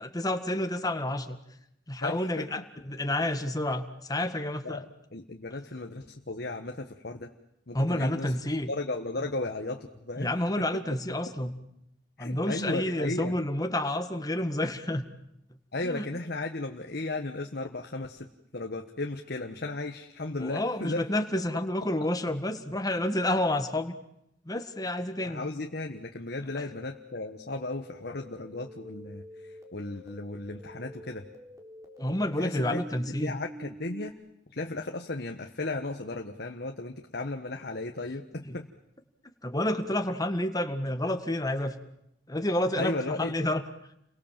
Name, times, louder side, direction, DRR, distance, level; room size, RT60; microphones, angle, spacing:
voice 1, 0.0-1.4 1.9-4.8 7.7-8.7 10.2-11.6 12.2-15.1 15.8-16.2 20.4-24.0 24.5-25.4 26.5-26.6 32.0-33.3 38.5-38.6 39.4-41.8 42.3-43.6, left 1 dB, 20° left, 7 dB, 1.8 m, -29 dB
voice 2, 2.0-2.5 4.6-7.3 7.7-8.3 8.7-10.3 10.6-10.7 12.2-13.3 15.7-18.3 18.5-21.0 21.5-21.6 25.2-31.2 32.4-32.8 33.2-34.1 34.5-38.7 42.8-43.3, left 2 dB, 60° left, 3 dB, 1.5 m, -35 dB
sound 1, 26.6-34.1, equal, 20° right, 3.7 m, -47 dB
30.0 x 23.0 x 7.6 m, 0.81 s
head